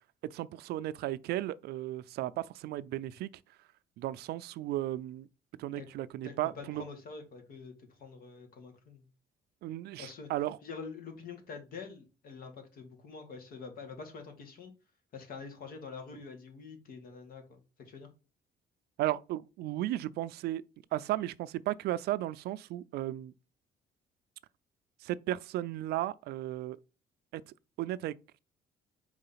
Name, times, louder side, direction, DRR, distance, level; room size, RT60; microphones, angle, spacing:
voice 1, 0.3-3.3 4.0-5.3 5.6-6.8 9.6-10.6 19.0-20.6 20.9-23.3 25.0-26.8 27.3-27.4 27.8-28.1, right 14 dB, 75° right, 0.4 m, -35 dB
voice 2, 6.2-9.0 10.0-10.3 10.6-14.7 15.1-18.1, left 5 dB, 60° left, 2.0 m, -46 dB
4.8 x 3.8 x 5.6 m
cardioid pair, 110°, 17 cm